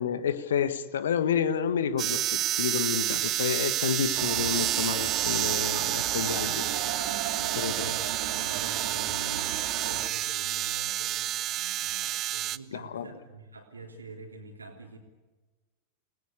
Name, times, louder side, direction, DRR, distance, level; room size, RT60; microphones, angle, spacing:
voice 1, 0.0-6.7 7.6-7.9 12.7-13.1, left 8 dB, 65° left, 13 dB, 1.6 m, -30 dB
sound 1, 2.0-12.6, right 14 dB, 35° right, 0.7 m, -29 dB
sound 2, 4.1-10.1, right 11 dB, 50° right, 2.3 m, -35 dB
voice 2, 7.3-15.0, right 2 dB, 75° right, 2 dB, 3.4 m, -45 dB
29.5 x 19.5 x 8.3 m, 1.3 s
figure-of-eight pair, 90°, 0 cm